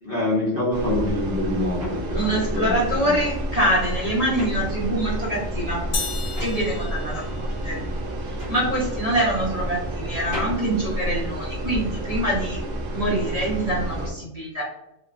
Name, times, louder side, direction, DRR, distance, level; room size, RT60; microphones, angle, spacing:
voice 1, 0.0-2.7 3.0-3.1, left 1 dB, 50° left, -5 dB, 0.8 m, -25 dB
sound 1, 0.7-14.1, right 1 dB, 75° right, 1.0 m, -30 dB
sound 2, 1.8-5.3 5.6-11.8, left 1 dB, 55° right, 1.4 m, -40 dB
voice 2, 2.1-5.8 6.4-7.8 8.3-12.6 12.9-14.6, right 1 dB, 35° right, -7 dB, 0.8 m, -25 dB
sound 3, 5.9-7.9, left 3 dB, 80° left, 1.0 m, -31 dB
3.1 x 2.2 x 2.4 m, 0.88 s
omnidirectional pair, 1.3 m